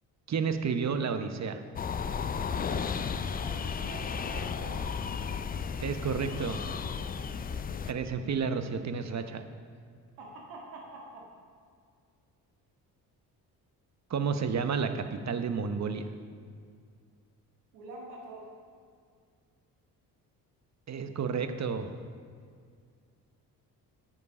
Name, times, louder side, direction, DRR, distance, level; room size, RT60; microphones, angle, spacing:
voice 1, 0.3-1.6 5.8-6.6 7.9-9.4 14.1-16.1 20.9-21.9, right 6 dB, 35° right, 8 dB, 0.9 m, -31 dB
sound 1, 1.8-7.9, left 6 dB, 20° left, 0.4 m, -34 dB
voice 2, 3.4-4.9 10.2-11.3 17.7-18.5, right 2 dB, 75° right, -2 dB, 1.9 m, -45 dB
9.5 x 7.4 x 5.4 m, 2.2 s
hypercardioid pair, 45°, 49 cm